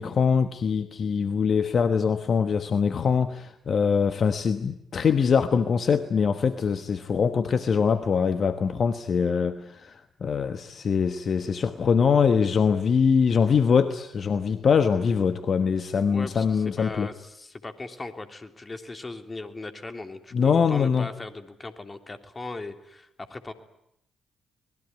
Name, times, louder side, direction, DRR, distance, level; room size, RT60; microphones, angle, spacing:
voice 1, 0.0-17.1 20.3-21.1, left 6 dB, 50° left, 10 dB, 1.2 m, -23 dB
voice 2, 16.1-23.5, left 2 dB, 30° left, 7 dB, 3.1 m, -38 dB
25.0 x 20.5 x 9.6 m, 0.78 s
hypercardioid pair, 45°, 0 cm